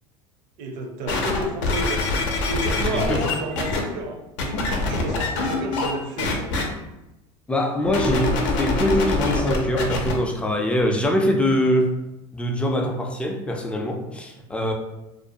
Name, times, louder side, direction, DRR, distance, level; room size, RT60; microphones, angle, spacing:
voice 1, 0.6-6.5, right 2 dB, 60° right, 5 dB, 0.5 m, -32 dB
sound 1, 1.1-3.8 4.4-5.9 6.2-6.6 7.9-10.1 10.8-10.9, left 3 dB, 80° left, 0.6 m, -24 dB
voice 2, 2.8-3.2 7.5-11.9 12.3-14.7, equal, 5° left, 2 dB, 0.3 m, -23 dB
2.4 x 2.2 x 2.6 m, 0.94 s
supercardioid pair, 115°, 15 cm